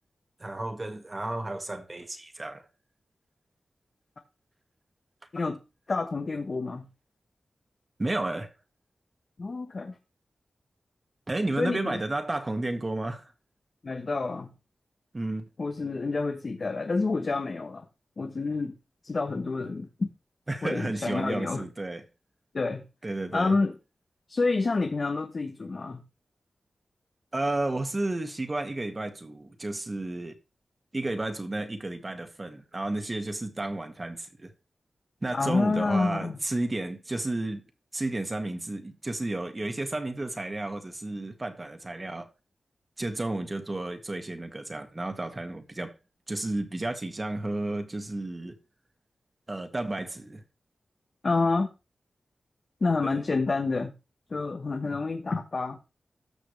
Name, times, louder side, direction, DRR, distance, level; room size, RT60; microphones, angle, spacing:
voice 1, 0.4-2.7 8.0-8.5 11.3-13.3 15.1-15.5 20.5-22.0 23.0-23.5 27.3-30.4 30.9-34.5 35.2-37.7 37.9-42.3 43.0-45.9 46.3-48.6 49.5-50.4 53.0-53.2 54.8-54.9, right 2 dB, 35° right, 2.0 m, -32 dB
voice 2, 5.9-6.9 9.4-10.0 11.6-12.0 13.8-14.5 15.6-17.9 18.2-18.7 19.0-20.1 20.6-21.6 22.5-22.8 23.3-23.7 24.3-26.0 35.3-36.4 51.2-51.7 52.8-53.9 54.3-55.8, left 3 dB, 55° left, 1.3 m, -28 dB
13.5 x 6.1 x 3.4 m
cardioid pair, 45°, 0 cm